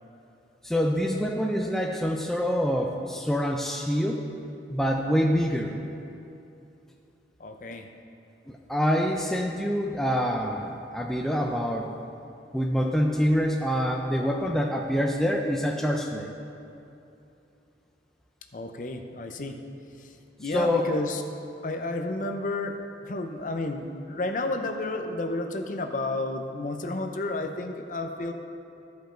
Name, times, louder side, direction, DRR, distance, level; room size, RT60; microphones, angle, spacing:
voice 1, 0.6-4.2 4.7-5.8 8.5-11.9 12.5-16.3 20.5-20.9, equal, ahead, 1 dB, 0.4 m, -26 dB
voice 2, 7.4-7.9 18.5-19.6 20.0-21.2 21.6-22.8 23.0-28.3, left 2 dB, 45° left, 5 dB, 0.6 m, -31 dB
14.0 x 5.2 x 4.4 m, 2.7 s
head